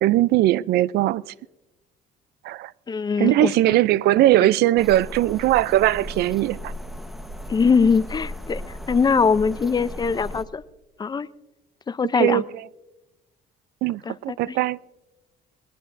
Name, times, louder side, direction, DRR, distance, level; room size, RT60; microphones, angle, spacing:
voice 1, 0.0-1.3 2.4-2.7 3.2-6.7 12.1-12.5 13.8-14.8, right 15 dB, 70° right, 0.4 m, -20 dB
voice 2, 2.9-3.8 7.5-8.6 8.9-10.6 11.0-11.3 11.9-12.4 14.1-14.6, left 5 dB, 25° left, 0.5 m, -22 dB
sound 1, 4.8-10.4, equal, ahead, 1.1 m, -36 dB
21.0 x 19.5 x 2.6 m
cardioid pair, 110°, 17 cm